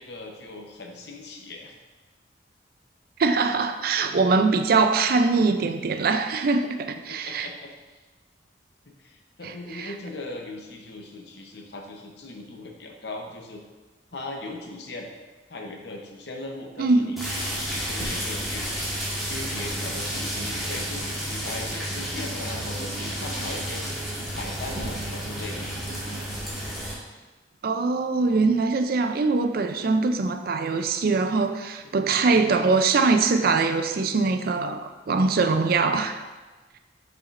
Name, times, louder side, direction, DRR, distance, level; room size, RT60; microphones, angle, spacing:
voice 1, 0.0-1.7 7.1-8.0 9.0-13.6 14.1-15.1 15.5-18.7 19.3-23.8 24.3-25.7 29.7-29.9 31.9-32.2, left 2 dB, 65° left, 2 dB, 0.9 m, -39 dB
voice 2, 3.2-7.5 9.4-9.9 16.8-17.1 27.6-36.2, right 4 dB, 55° right, 8 dB, 0.4 m, -22 dB
sound 1, 17.2-26.9, equal, ahead, 1.9 m, -31 dB
7.0 x 5.8 x 2.5 m, 1.3 s
head